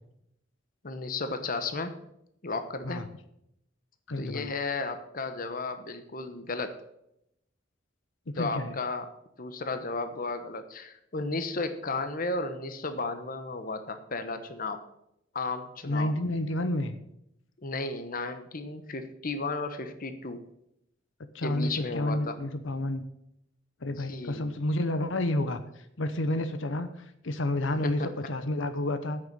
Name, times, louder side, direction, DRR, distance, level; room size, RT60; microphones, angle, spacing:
voice 1, 0.8-2.0 2.4-3.1 4.2-6.8 8.4-9.1 9.4-14.8 15.3-16.1 17.6-20.4 21.4-22.3 24.0-24.5 27.8-27.9 28.2-28.3, left 3 dB, 45° left, 9 dB, 1.1 m, -34 dB
voice 2, 4.1-4.5 8.3-8.8 15.9-17.0 21.3-23.0 23.8-25.6 26.0-26.9 27.2-29.2, left 1 dB, 80° left, 10 dB, 0.9 m, -30 dB
8.8 x 6.8 x 8.6 m, 0.78 s
head